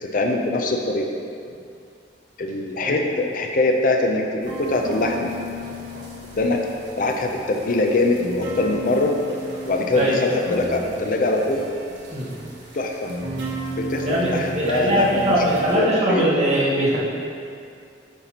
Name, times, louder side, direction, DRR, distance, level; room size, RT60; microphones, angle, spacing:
voice 1, 0.0-1.1 2.4-5.3 6.4-6.6 7.0-9.1 9.6-11.6 12.7-13.1 13.8-15.4 15.7-16.3, left 2 dB, 50° left, 2 dB, 0.5 m, -23 dB
sound 1, 4.4-15.8, right 1 dB, 70° right, 1.3 m, -34 dB
voice 2, 14.0-17.0, right 1 dB, 40° right, -7 dB, 1.6 m, -21 dB
8.9 x 5.7 x 2.9 m, 2.4 s
head